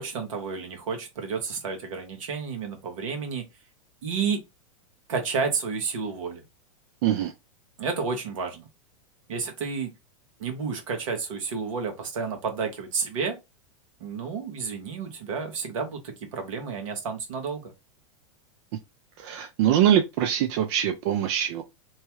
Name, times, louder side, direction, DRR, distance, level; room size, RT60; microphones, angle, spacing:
voice 1, 0.0-3.5 4.0-4.4 5.1-6.4 7.8-8.6 9.3-9.9 10.4-13.4 14.0-17.7, right 5 dB, 75° right, 1.2 m, -31 dB
voice 2, 7.0-7.3 19.2-21.6, right 10 dB, 55° right, 0.5 m, -23 dB
3.0 x 2.2 x 3.0 m
hypercardioid pair, 110°, 17 cm